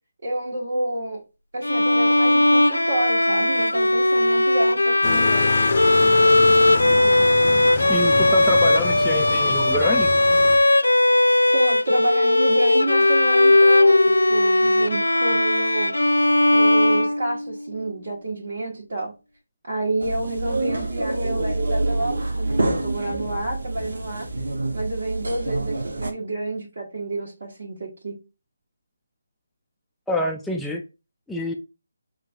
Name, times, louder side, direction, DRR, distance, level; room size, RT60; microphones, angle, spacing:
voice 1, 0.2-1.2 1.5-5.5 11.5-15.9 16.5-19.1 19.7-24.3 24.7-28.2, right 2 dB, 60° right, 1.2 m, -29 dB
Bowed string instrument, 1.6-17.6, left 2 dB, 90° left, 0.4 m, -18 dB
sound 1, 5.0-10.6, left 6 dB, 40° left, 0.6 m, -28 dB
voice 2, 7.9-10.1 30.1-30.8 31.3-31.5, left 1 dB, ahead, 0.4 m, -27 dB
sound 2, 20.0-26.1, right 2 dB, 75° right, 0.9 m, -26 dB
5.9 x 2.2 x 2.6 m
figure-of-eight pair, 155°, 0 cm